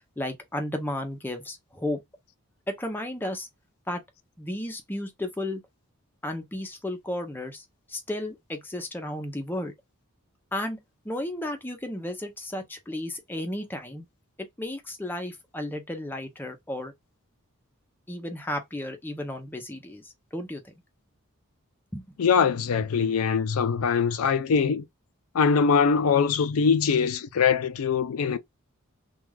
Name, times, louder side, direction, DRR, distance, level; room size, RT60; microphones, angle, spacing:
voice 1, 0.2-2.0 2.7-3.5 3.9-4.0 4.4-5.6 6.2-9.7 10.5-14.0 14.6-16.9 18.1-20.7 21.9-22.0, left 1 dB, 10° left, 0.5 m, -33 dB
voice 2, 22.2-24.8 25.3-28.4, left 6 dB, 75° left, 0.4 m, -22 dB
2.3 x 2.2 x 3.2 m
head